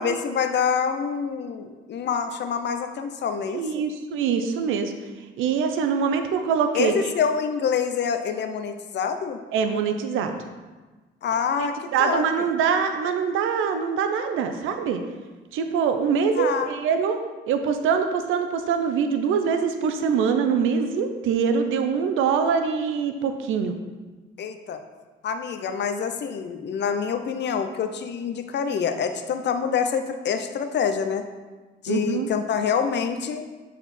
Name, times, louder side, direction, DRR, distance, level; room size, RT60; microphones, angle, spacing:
voice 1, 0.0-3.7 6.7-9.4 11.2-12.4 16.3-16.7 24.4-24.8 25.2-31.2 31.8-33.4, left 6 dB, 60° left, 7 dB, 0.7 m, -26 dB
voice 2, 3.5-4.9 5.4-7.0 9.5-10.4 11.6-15.0 15.5-17.2 17.5-23.7 31.9-32.3, right 6 dB, 90° right, 7 dB, 0.6 m, -24 dB
9.0 x 4.2 x 4.2 m, 1.3 s
cardioid pair, 90°, 20 cm